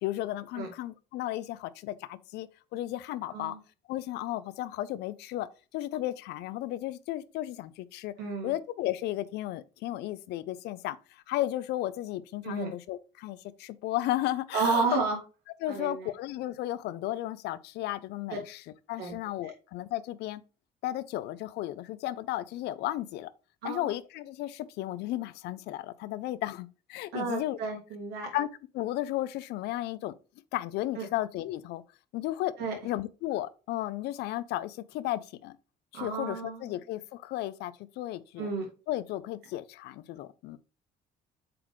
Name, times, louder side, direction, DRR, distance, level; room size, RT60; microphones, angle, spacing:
voice 1, 0.0-3.6 3.9-5.5 5.7-8.1 8.4-15.0 15.6-18.6 18.9-20.4 20.8-23.3 23.6-27.6 28.3-28.5 28.7-30.1 30.5-31.8 32.1-32.5 32.8-35.6 35.9-38.5 38.9-40.6, left 15 dB, 85° left, 0.6 m, -34 dB
voice 2, 8.2-8.5 12.4-12.7 14.5-15.2 15.7-16.1 19.0-19.1 19.4-19.5 23.6-23.9 27.1-28.3 31.0-31.1 32.6-32.7 35.9-36.8 38.4-38.7, right 5 dB, 75° right, 3.1 m, -32 dB
7.6 x 4.0 x 3.1 m
cardioid pair, 110°, 17 cm